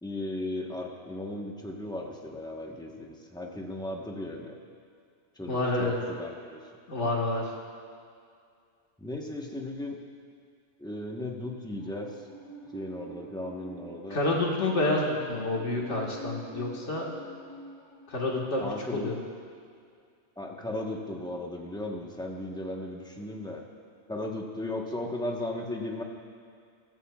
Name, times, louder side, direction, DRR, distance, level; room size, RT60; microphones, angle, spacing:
voice 1, 0.0-4.6 5.4-6.6 9.0-10.0 10.8-12.1 12.7-14.2 18.6-19.1 20.4-23.6 24.1-26.0, left 1 dB, 5° left, 0 dB, 1.0 m, -36 dB
voice 2, 5.5-6.0 6.9-7.5 14.1-17.1 18.1-18.6 18.9-19.2, left 2 dB, 75° left, -2 dB, 2.0 m, -28 dB
Musical instrument, 11.8-18.6, right 1 dB, 25° left, 2.4 m, -47 dB
16.0 x 14.5 x 2.4 m, 2.2 s
omnidirectional pair, 1.2 m